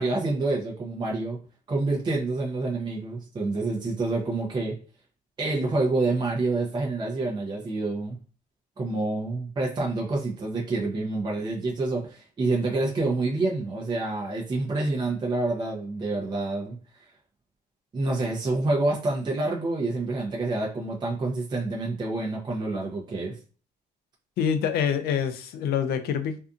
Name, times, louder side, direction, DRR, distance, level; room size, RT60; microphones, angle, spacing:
voice 1, 0.0-1.4 1.7-4.8 5.4-8.2 8.8-16.8 17.9-23.4, right 2 dB, 25° right, 0.6 m, -27 dB
voice 2, 24.4-26.4, left 7 dB, 70° left, 0.4 m, -26 dB
2.6 x 2.4 x 2.4 m
cardioid pair, 110°, 17 cm